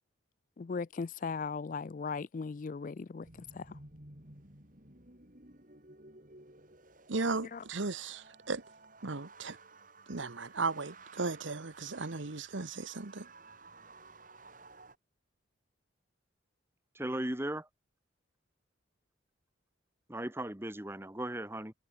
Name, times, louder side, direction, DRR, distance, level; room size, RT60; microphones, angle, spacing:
voice 1, 0.6-3.3 3.5-3.8 7.4-7.6, left 4 dB, 40° left, 0.4 m, -38 dB
sound 1, 3.2-15.0, right 3 dB, 45° right, 4.3 m, -55 dB
voice 2, 7.1-8.6 9.0-9.6 10.1-13.3, right 3 dB, 80° right, 1.3 m, -36 dB
voice 3, 17.0-17.7 20.1-21.7, right 1 dB, 10° right, 1.3 m, -37 dB
head